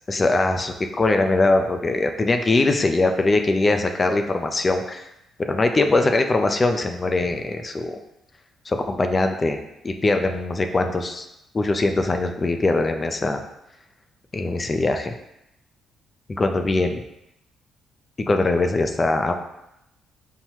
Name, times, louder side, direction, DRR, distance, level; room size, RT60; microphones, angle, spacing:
voice 1, 0.1-5.1 5.4-8.0 8.7-9.6 9.8-11.3 11.5-13.4 14.3-15.1 16.3-16.9 18.3-19.3, left 2 dB, 30° left, 6 dB, 0.4 m, -21 dB
5.6 x 2.2 x 3.0 m, 0.86 s
cardioid pair, 90°, 0 cm